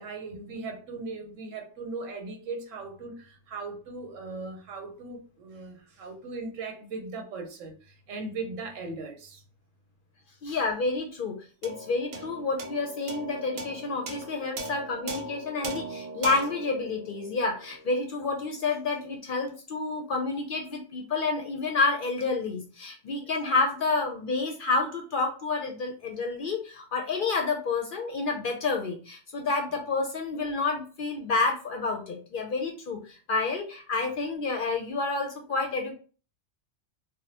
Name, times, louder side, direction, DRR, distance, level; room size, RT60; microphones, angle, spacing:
voice 1, 0.0-9.4, right 3 dB, 85° right, 3 dB, 1.1 m, -38 dB
voice 2, 10.4-11.4 11.6-35.9, left 3 dB, 60° left, 2 dB, 0.6 m, -29 dB
sound 1, 11.6-18.2, right 1 dB, 60° right, 0.8 m, -39 dB
3.4 x 2.1 x 2.8 m, 0.37 s
omnidirectional pair, 1.3 m